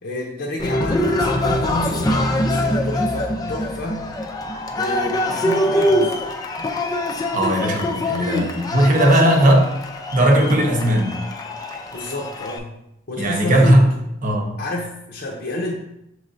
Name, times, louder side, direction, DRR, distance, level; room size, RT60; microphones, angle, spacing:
voice 1, 0.0-4.0 4.7-6.1 8.8-9.6 11.9-12.7 13.1-13.8 14.6-15.8, left 1 dB, 60° left, -3 dB, 0.6 m, -30 dB
Cheering, 0.6-12.6, left 1 dB, 20° left, 0.4 m, -23 dB
voice 2, 7.3-9.7 10.1-11.2 13.2-13.9 14.2-14.6, right 1 dB, 45° right, 2 dB, 0.7 m, -17 dB
6.3 x 3.1 x 2.5 m, 0.81 s
head